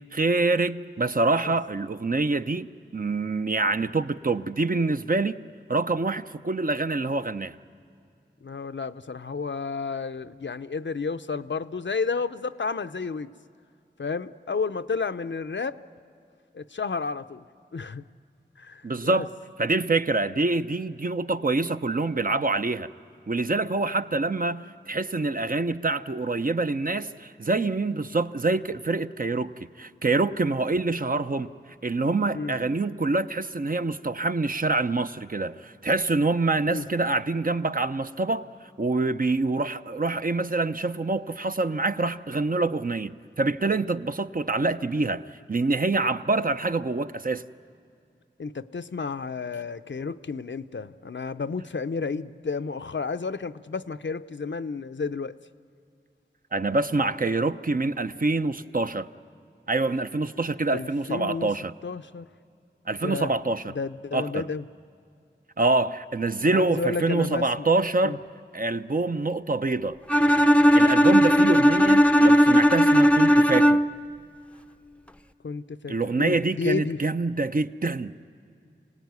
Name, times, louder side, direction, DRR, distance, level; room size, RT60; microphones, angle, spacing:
voice 1, 0.1-2.7 2.9-5.4 5.7-7.6 18.8-19.3 19.6-22.9 23.3-31.5 31.8-38.5 38.8-45.2 45.5-47.4 56.5-59.1 59.7-61.7 62.9-63.7 64.1-64.5 65.6-68.2 68.5-70.0 70.7-73.8 75.9-78.1, right 3 dB, 45° right, 0.7 m, -26 dB
voice 2, 8.4-13.3 14.0-15.8 16.5-17.4 17.7-18.0 18.6-19.3 32.3-32.5 36.7-36.9 48.4-55.4 60.7-61.5 61.8-62.3 63.0-63.3 63.7-64.6 66.4-67.7 68.0-68.2 75.4-77.0, left 4 dB, 75° left, 0.6 m, -31 dB
Bowed string instrument, 70.1-74.1, equal, 5° left, 0.6 m, -17 dB
27.0 x 18.0 x 9.5 m
wide cardioid pair, 50°, 19 cm